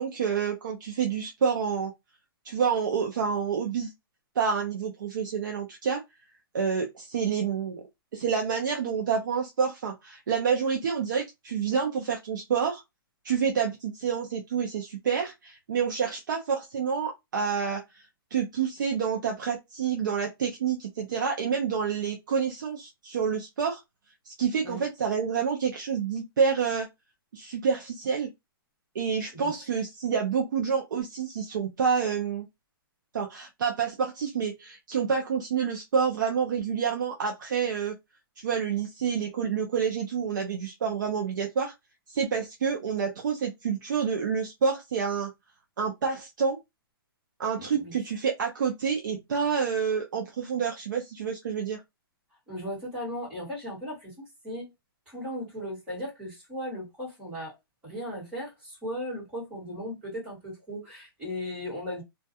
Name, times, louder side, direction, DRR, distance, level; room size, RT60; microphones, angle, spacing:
voice 1, 0.0-1.9 2.4-3.9 4.4-6.0 6.5-7.8 8.1-12.8 13.2-18.1 18.3-23.8 24.2-26.9 27.3-28.3 28.9-32.4 33.1-38.0 38.4-41.7 42.1-45.3 45.8-46.6 47.4-51.8, right 6 dB, 55° right, 0.5 m, -28 dB
voice 2, 47.6-47.9 52.5-54.7 55.1-57.5 57.8-62.0, equal, 10° right, 1.3 m, -37 dB
2.3 x 2.3 x 2.6 m
hypercardioid pair, 180°, 13 cm